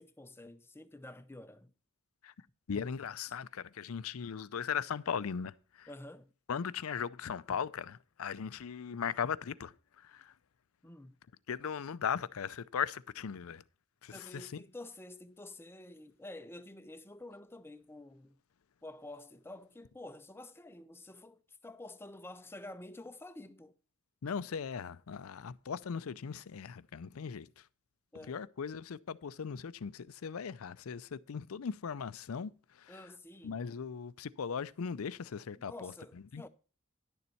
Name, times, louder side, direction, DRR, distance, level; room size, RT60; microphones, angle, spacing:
voice 1, 0.0-1.7 5.9-6.3 10.8-11.2 14.1-18.4 18.8-23.7 28.1-28.4 32.9-33.7 35.6-36.5, left 2 dB, 10° left, 0.5 m, -49 dB
voice 2, 2.7-5.9 6.5-10.3 11.5-13.6 14.0-14.6 24.2-27.7 28.3-33.1 33.4-36.5, left 7 dB, 80° left, 0.5 m, -38 dB
10.5 x 6.9 x 4.4 m
head